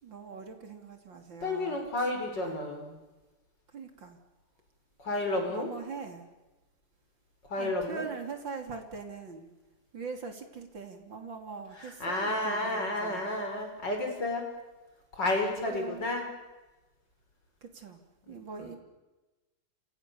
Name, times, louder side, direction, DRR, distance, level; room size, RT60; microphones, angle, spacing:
voice 1, 0.0-1.8 2.4-2.6 3.7-4.2 5.5-6.3 7.6-9.5 9.9-13.2 15.6-16.1 17.6-18.8, right 5 dB, 35° right, 5 dB, 3.3 m, -42 dB
voice 2, 1.4-3.0 5.0-5.7 7.5-8.1 11.8-14.5 15.1-16.3 18.3-18.8, left 2 dB, 30° left, 3 dB, 5.6 m, -31 dB
29.0 x 27.5 x 7.0 m, 1.1 s
omnidirectional pair, 3.7 m